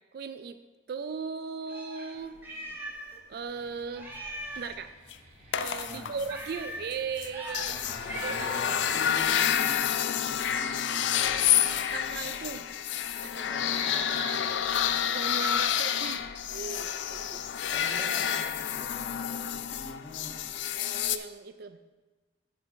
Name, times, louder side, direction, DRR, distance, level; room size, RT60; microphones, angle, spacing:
voice 1, 0.1-0.6 0.9-2.4 3.3-4.1 4.6-4.9 5.5-7.7 8.2-8.5 11.9-12.6 13.2-13.7 15.1-17.4 20.7-21.8, right 5 dB, 60° right, 11 dB, 0.3 m, -37 dB
Meow, 1.7-3.2 3.5-3.6 3.9-4.8 6.3-6.9 7.3-7.7 8.1-8.7 11.5-12.1 13.7-14.4, right 1 dB, 10° right, 1.3 m, -40 dB
sound 1, 3.5-9.1, right 1 dB, 45° right, 2.0 m, -54 dB
sound 2, 4.2-4.3 5.1-5.2 5.5-6.5 6.9-7.0 7.2-21.2, left 9 dB, 85° left, 0.4 m, -29 dB
voice 2, 5.8-6.3 7.6-12.4 13.3-14.6 17.0-20.4, left 1 dB, 20° left, -7 dB, 1.4 m, -45 dB
8.0 x 4.4 x 7.0 m, 1.2 s
head